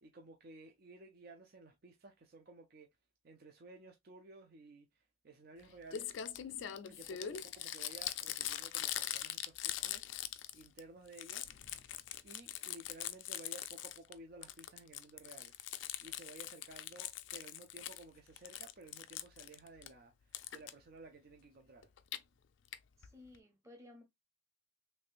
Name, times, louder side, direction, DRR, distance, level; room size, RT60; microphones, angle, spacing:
voice 1, 0.0-2.9 3.2-6.1 6.9-11.5 12.2-15.5 16.0-21.9, right 2 dB, 50° right, 0.5 m, -55 dB
Crumpling crinkling, 5.6-5.7 5.9-10.8 11.1-14.1 14.4-18.0 18.4-19.9 20.3-20.7 21.8-22.2 22.7-22.8 23.0-23.1 23.3-23.4, left 11 dB, 70° left, 0.4 m, -42 dB
voice 2, 23.0-24.0, left 2 dB, 15° right, 1.2 m, -57 dB
3.3 x 3.2 x 2.4 m
head